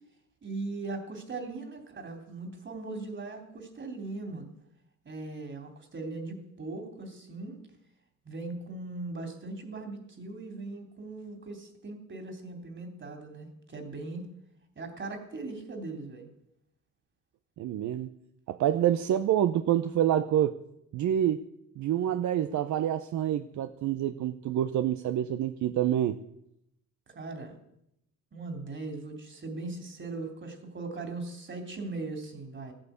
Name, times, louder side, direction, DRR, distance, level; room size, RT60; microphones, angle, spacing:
voice 1, 0.4-4.5 5.0-7.6 8.2-14.2 14.7-16.3 27.1-27.6 28.3-32.7, right 3 dB, 40° right, 5 dB, 3.4 m, -39 dB
voice 2, 17.6-18.1 18.5-20.6 20.9-21.5 21.8-26.2, right 11 dB, 70° right, 10 dB, 0.7 m, -27 dB
14.5 x 8.9 x 8.2 m, 0.79 s
cardioid pair, 90°, 30 cm